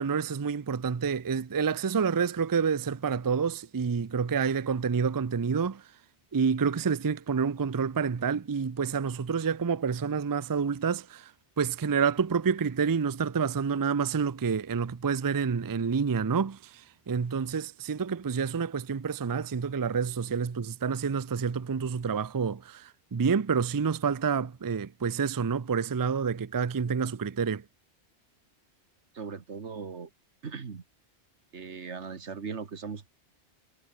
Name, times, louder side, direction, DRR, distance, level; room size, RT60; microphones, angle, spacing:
voice 1, 0.0-5.8 6.3-11.3 11.6-16.8 17.1-27.6, right 6 dB, 30° right, 0.3 m, -28 dB
voice 2, 29.1-30.1 30.4-30.8 31.5-33.1, right 5 dB, 90° right, 1.9 m, -38 dB
omnidirectional pair, 1.1 m